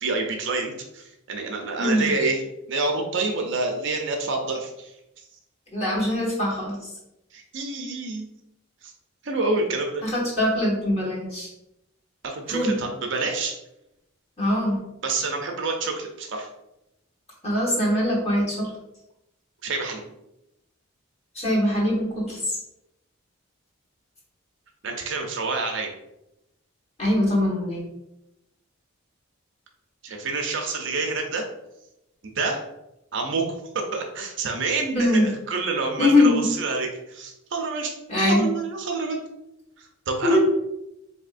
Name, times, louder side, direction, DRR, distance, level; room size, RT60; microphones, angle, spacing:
voice 1, 0.0-2.4 2.7-5.0 7.3-8.3 8.8-8.9 9.2-10.0 12.2-13.5 15.0-16.5 19.6-20.0 24.8-25.9 30.0-31.4 32.3-32.6 33.1-33.4 33.7-37.9 38.2-39.2 39.8-40.4, right 3 dB, 60° right, 2 dB, 0.5 m, -27 dB
voice 2, 1.8-2.1 5.7-6.9 10.0-11.5 12.5-12.7 14.4-14.8 17.4-18.7 21.3-22.6 27.0-27.8 34.9-35.3 36.0-36.4 38.1-38.5 40.2-40.4, left 1 dB, 30° left, -4 dB, 1.1 m, -22 dB
4.2 x 2.7 x 2.5 m, 0.88 s
head